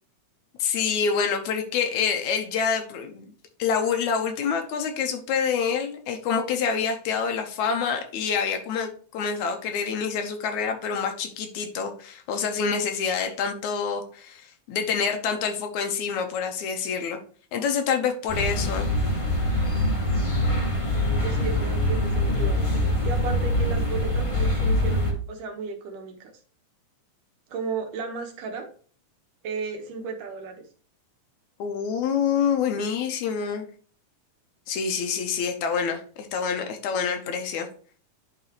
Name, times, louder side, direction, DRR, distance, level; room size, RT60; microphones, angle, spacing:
voice 1, 0.6-3.3 3.6-17.2 17.5-18.9 31.6-33.7 34.7-37.7, left 6 dB, 75° left, 6 dB, 2.2 m, -27 dB
sound 1, 18.3-25.1, left 1 dB, 20° left, 0.9 m, -24 dB
voice 2, 20.9-22.6 23.0-26.3 27.5-28.7 29.4-30.6, right 4 dB, 85° right, 3 dB, 2.8 m, -34 dB
10.5 x 3.9 x 3.0 m, 0.43 s
omnidirectional pair, 3.6 m